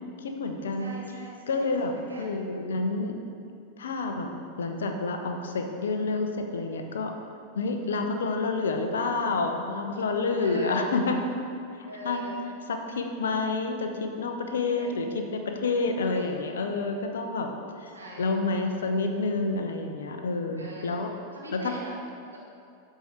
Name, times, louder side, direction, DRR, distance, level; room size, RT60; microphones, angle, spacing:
voice 1, 0.2-0.9 1.5-1.9 2.2-3.2 3.8-4.3 4.6-7.1 7.5-11.2 11.8-12.2 12.9-17.5 17.8-17.9 18.2-21.1 21.5-21.6, left 3 dB, 65° left, 5 dB, 0.8 m, -29 dB
voice 2, 0.8-2.3 10.4-10.9 11.8-12.4 14.7-15.1 16.1-16.3 17.9-18.3 20.6-21.0 21.3-21.9 22.3-22.4, right 1 dB, 80° right, -4 dB, 1.8 m, -41 dB
13.0 x 4.9 x 4.3 m, 2.5 s
figure-of-eight pair, 90°, 0 cm